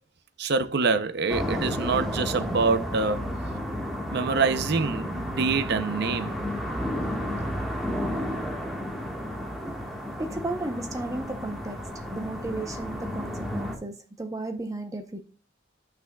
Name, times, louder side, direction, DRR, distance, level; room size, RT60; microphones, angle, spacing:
voice 1, 0.4-3.2 4.1-6.4, right 4 dB, 60° right, 0.6 m, -25 dB
sound 1, 1.3-13.8, equal, ahead, 1.5 m, -32 dB
voice 2, 10.2-11.8 12.1-15.2, right 2 dB, 20° right, 0.8 m, -34 dB
12.0 x 6.0 x 2.3 m
head